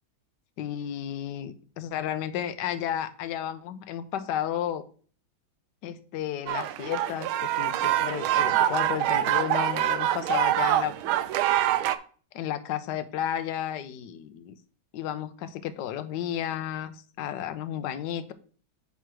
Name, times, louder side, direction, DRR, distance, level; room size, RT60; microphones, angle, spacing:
voice 1, 0.6-4.8 5.8-11.2 12.3-14.6 14.9-18.3, left 10 dB, 70° left, 10 dB, 1.2 m, -33 dB
sound 1, 6.5-12.0, right 13 dB, 85° right, 1.4 m, -25 dB
9.2 x 3.2 x 6.1 m, 0.42 s
omnidirectional pair, 2.2 m